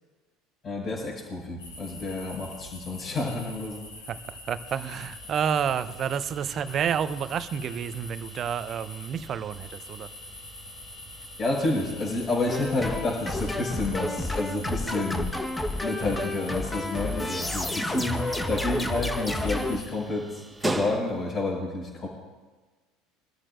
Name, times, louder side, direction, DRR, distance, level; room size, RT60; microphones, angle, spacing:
voice 1, 0.6-4.0 11.4-15.3 15.8-22.1, left 2 dB, 40° left, -7 dB, 4.8 m, -30 dB
sound 1, 1.6-19.9, left 2 dB, 85° left, 5.2 m, -45 dB
voice 2, 4.1-10.1, right 8 dB, 40° right, 14 dB, 0.7 m, -30 dB
sound 2, 4.7-21.5, right 2 dB, 10° right, 1.2 m, -43 dB
sound 3, 12.5-19.8, left 1 dB, 10° left, 1.2 m, -30 dB
25.0 x 13.0 x 2.6 m, 1.3 s
hypercardioid pair, 70°, 0 cm